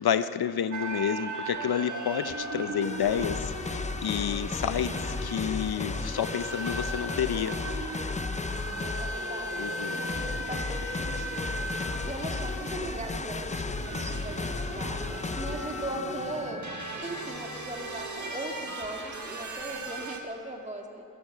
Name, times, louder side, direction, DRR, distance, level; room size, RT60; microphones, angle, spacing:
voice 1, 0.0-7.6 9.6-10.0, left 9 dB, 75° left, 13 dB, 0.6 m, -30 dB
sound 1, 0.7-20.2, right 2 dB, 50° right, 1.7 m, -37 dB
sound 2, 2.8-16.5, left 4 dB, 20° left, 0.4 m, -35 dB
voice 2, 9.0-16.6 16.9-21.0, right 1 dB, 20° right, 2 dB, 1.8 m, -39 dB
13.5 x 13.0 x 7.7 m, 2.5 s
wide cardioid pair, 85°, 38 cm